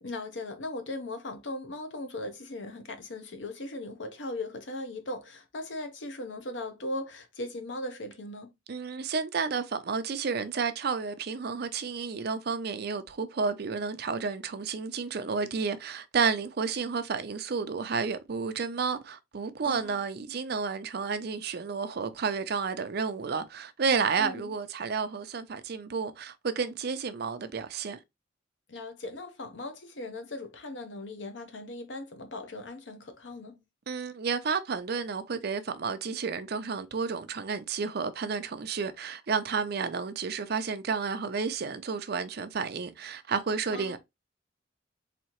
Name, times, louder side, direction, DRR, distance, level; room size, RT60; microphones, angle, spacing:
voice 1, 0.0-8.5 19.6-20.0 24.2-24.5 28.7-33.6 43.7-44.0, left 2 dB, 75° left, 0.9 m, -38 dB
voice 2, 8.7-28.0 33.9-44.0, right 5 dB, 60° right, 0.5 m, -31 dB
4.1 x 2.8 x 2.9 m
head